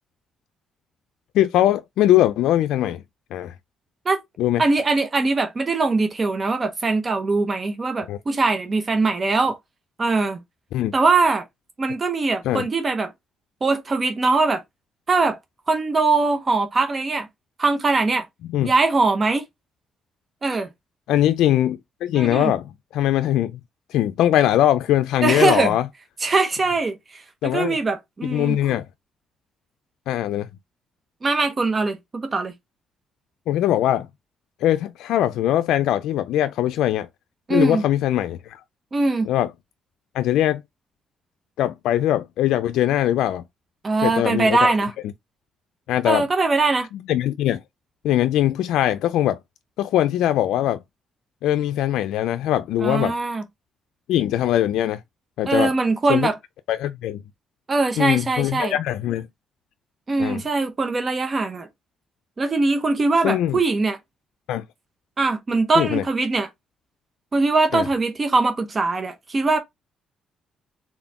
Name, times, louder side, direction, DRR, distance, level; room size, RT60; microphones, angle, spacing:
voice 1, 1.3-3.0 3.3-3.5 4.4-4.6 8.1-8.2 10.7-10.9 12.4-12.7 18.5-18.7 21.1-22.7 22.9-23.6 23.9-25.9 27.4-27.8 28.2-28.9 30.1-30.5 33.5-34.1 34.6-37.1 37.5-38.6 39.3-39.5 40.1-40.6 41.6-43.4 44.0-44.7 45.9-46.2 47.1-47.6 48.0-49.4 49.8-50.8 51.4-53.1 54.1-55.0 55.4-55.7 56.1-56.3 56.7-57.2 58.0-59.3 60.2-60.4 63.2-63.6 64.5-64.7 65.8-66.0 67.7-67.9, left 12 dB, 85° left, 0.4 m, -21 dB
voice 2, 4.6-9.6 10.0-10.4 10.9-11.4 11.8-13.1 13.6-14.6 15.1-15.4 15.7-17.3 17.6-18.3 18.6-19.4 20.4-20.7 22.1-22.5 25.2-25.7 26.2-28.6 31.2-32.5 37.5-37.8 38.9-39.3 43.8-44.9 46.0-46.9 52.8-53.4 55.5-56.3 57.7-58.8 60.1-61.7 62.4-64.0 65.2-66.5 67.3-69.6, right 3 dB, 30° right, 0.8 m, -21 dB
4.2 x 3.7 x 2.9 m
cardioid pair, 100°, 0 cm